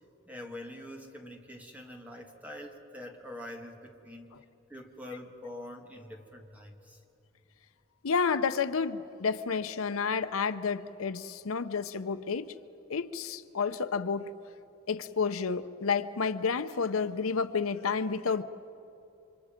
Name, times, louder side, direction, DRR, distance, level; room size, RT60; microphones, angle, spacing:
voice 1, 0.3-4.3 4.7-7.0, left 1 dB, 5° right, 2 dB, 1.8 m, -45 dB
voice 2, 8.0-12.5 12.9-14.3 14.9-18.4, left 5 dB, 80° left, 12 dB, 0.7 m, -30 dB
29.0 x 25.0 x 5.1 m, 2.9 s
head